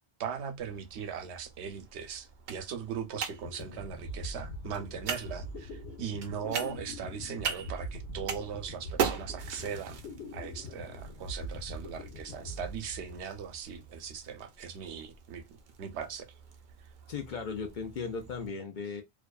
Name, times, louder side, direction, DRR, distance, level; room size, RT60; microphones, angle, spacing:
voice 1, 0.2-10.0 10.3-15.4 15.8-16.3, right 7 dB, 80° right, 0.9 m, -39 dB
sound 1, 0.6-18.5, right 7 dB, 55° right, 0.6 m, -42 dB
sound 2, 2.9-3.0 3.1-13.6, left 1 dB, 75° left, 1.1 m, -43 dB
voice 2, 17.1-19.0, left 5 dB, 55° left, 0.6 m, -37 dB
2.5 x 2.2 x 2.3 m
omnidirectional pair, 1.1 m